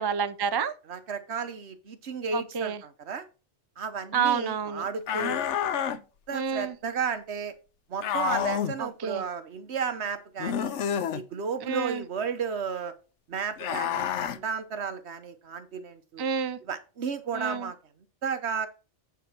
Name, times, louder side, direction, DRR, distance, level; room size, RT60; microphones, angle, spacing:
voice 1, 0.0-0.7 2.3-2.8 4.1-4.8 6.3-6.7 8.8-9.2 11.7-12.0 16.2-16.6 17.3-17.7, right 6 dB, 35° right, 0.4 m, -29 dB
voice 2, 0.9-3.3 3.8-5.4 6.3-7.5 7.9-10.7 11.1-12.9 13.3-16.2 16.6-17.8 18.2-18.7, right 6 dB, 65° right, 1.3 m, -33 dB
sound 1, 5.1-6.0 8.0-8.8 10.4-11.2 13.6-14.4, left 8 dB, 80° left, 1.0 m, -28 dB
9.0 x 4.6 x 5.9 m
omnidirectional pair, 1.2 m